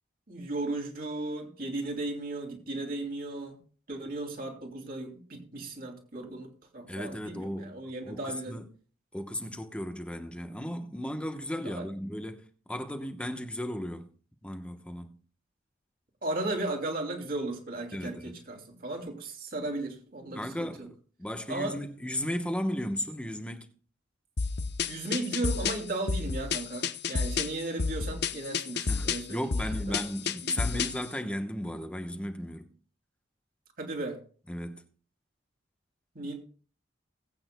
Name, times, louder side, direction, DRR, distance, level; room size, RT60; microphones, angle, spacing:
voice 1, 0.3-3.6 3.9-8.6 11.6-11.9 16.2-20.7 21.5-21.8 24.8-29.6 29.9-30.0 30.4-30.8 33.8-34.2 36.1-36.4, right 2 dB, 50° right, 2.6 m, -35 dB
voice 2, 6.9-7.8 8.1-8.7 9.1-14.1 14.4-15.2 17.9-18.4 20.3-23.7 28.7-32.7 34.5-34.8, equal, 5° left, 0.9 m, -35 dB
sound 1, 24.4-31.1, left 5 dB, 60° left, 0.8 m, -31 dB
20.5 x 8.7 x 2.2 m
head